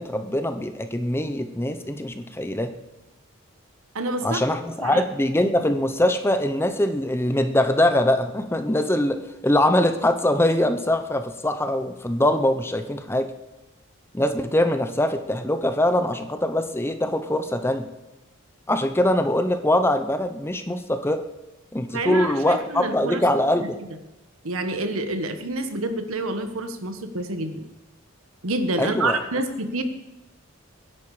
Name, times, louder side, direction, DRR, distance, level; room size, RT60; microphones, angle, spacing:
voice 1, 0.0-2.7 4.2-13.3 14.1-17.9 18.7-21.2 21.7-23.8 28.8-29.2, left 1 dB, 10° left, 8 dB, 0.8 m, -23 dB
voice 2, 3.9-4.4 4.8-5.0 21.9-23.2 24.4-27.6 28.4-29.8, right 2 dB, 80° right, 8 dB, 1.6 m, -27 dB
23.5 x 10.5 x 5.0 m, 0.99 s
head